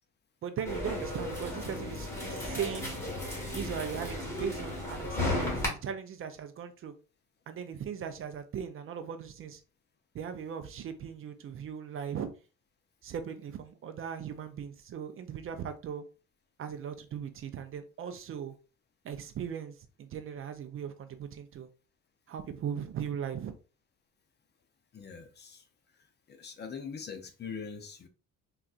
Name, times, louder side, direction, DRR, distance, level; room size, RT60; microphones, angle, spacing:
voice 1, 0.4-2.9 3.5-5.6 5.8-6.9 7.5-9.6 10.1-12.3 13.0-16.0 16.6-18.5 19.0-21.7 22.3-23.5, right 8 dB, 40° right, 0.4 m, -38 dB
sound 1, 0.6-5.7, left 1 dB, 10° left, 1.4 m, -34 dB
voice 2, 24.9-25.6 26.4-28.1, left 6 dB, 35° left, 0.5 m, -42 dB
3.8 x 2.4 x 2.4 m
cardioid pair, 105°, 32 cm